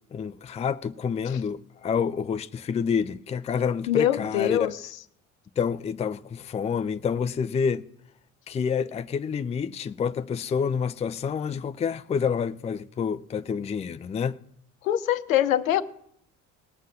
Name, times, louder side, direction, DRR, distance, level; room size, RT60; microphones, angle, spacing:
voice 1, 0.1-4.6 5.6-7.8 8.5-14.4, left 6 dB, 15° left, 0.5 m, -28 dB
voice 2, 3.9-4.8 14.8-15.8, left 11 dB, 75° left, 0.8 m, -23 dB
18.5 x 7.4 x 7.4 m
figure-of-eight pair, 50°, 41 cm